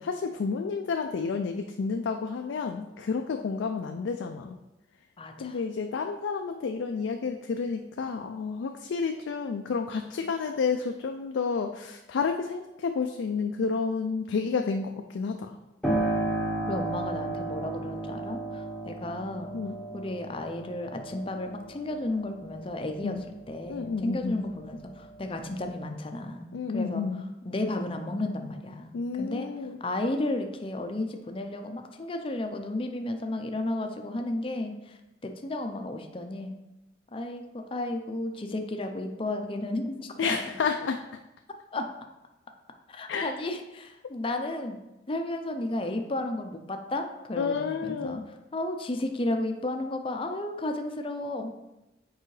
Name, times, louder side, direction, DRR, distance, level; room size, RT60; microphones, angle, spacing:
voice 1, 0.0-4.6 5.4-15.6 19.5-19.8 23.0-23.2 23.7-24.4 26.5-27.2 28.9-29.8 40.2-41.0 43.1-43.3 47.4-48.2, left 5 dB, 85° left, 4 dB, 0.4 m, -30 dB
voice 2, 5.2-5.6 16.7-19.6 19.9-23.2 23.5-27.0 27.4-29.5 29.8-36.5 37.1-40.4 41.7-41.9 42.9-44.8 45.1-48.2 48.5-51.5, left 2 dB, 30° left, 5 dB, 0.5 m, -33 dB
Piano, 15.8-24.3 24.7-25.7, right 2 dB, 5° left, 0.9 m, -34 dB
6.7 x 4.8 x 3.2 m, 0.97 s
head